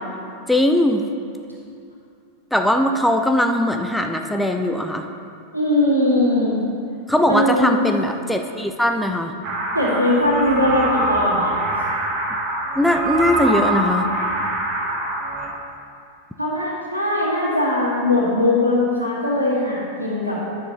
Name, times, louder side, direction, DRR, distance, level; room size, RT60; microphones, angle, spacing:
voice 1, 0.5-1.0 2.5-5.1 7.1-9.3 12.8-14.1, left 1 dB, 5° left, 4 dB, 0.5 m, -20 dB
voice 2, 5.5-6.6 7.3-7.8 9.7-11.5 16.4-20.4, left 1 dB, 90° right, -6 dB, 2.1 m, -20 dB
sound 1, 9.4-15.5, right 1 dB, 40° right, 1.3 m, -24 dB
9.9 x 6.5 x 3.9 m, 2.5 s
figure-of-eight pair, 90°, 0 cm